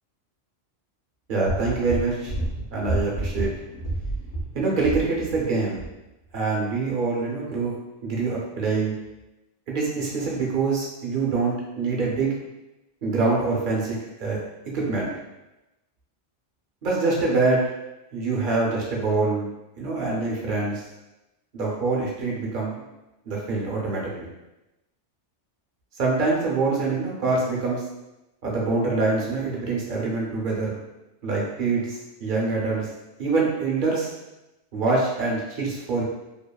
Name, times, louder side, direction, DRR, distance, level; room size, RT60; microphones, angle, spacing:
voice 1, 1.3-2.3 2.7-3.5 4.5-5.8 6.3-7.7 8.0-8.9 9.7-12.3 13.0-14.4 14.7-15.1 16.8-17.6 18.1-19.5 19.8-20.8 21.5-22.8 23.3-24.3 26.0-27.8 28.4-30.8 31.2-32.9 33.2-34.1 34.7-36.0, right 3 dB, 55° right, -3 dB, 0.7 m, -25 dB
sound 1, 1.5-5.5 5.8-5.9, right 1 dB, 75° left, 1.0 m, -30 dB
2.8 x 2.4 x 2.3 m, 0.97 s
omnidirectional pair, 1.2 m